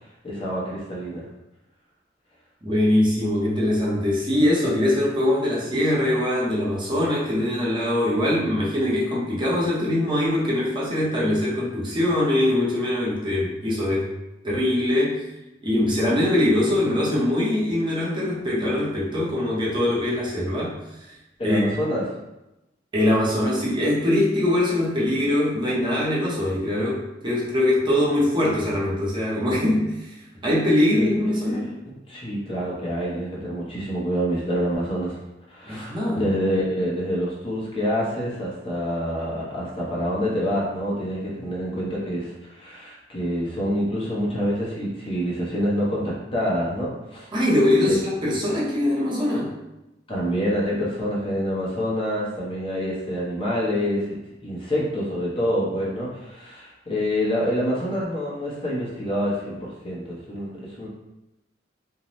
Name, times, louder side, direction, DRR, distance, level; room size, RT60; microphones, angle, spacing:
voice 1, 0.2-1.3 21.4-22.0 30.9-31.7 32.1-35.1 35.5-47.3 47.9-48.0 50.1-60.5 60.8-60.9, equal, 30° left, -6 dB, 0.7 m, -27 dB
voice 2, 2.6-14.1 14.4-15.3 15.6-21.1 21.4-21.6 22.9-30.2 30.4-31.7 35.6-36.2 47.3-49.5, left 1 dB, 25° right, -6 dB, 0.7 m, -22 dB
2.6 x 2.1 x 3.0 m, 0.94 s
head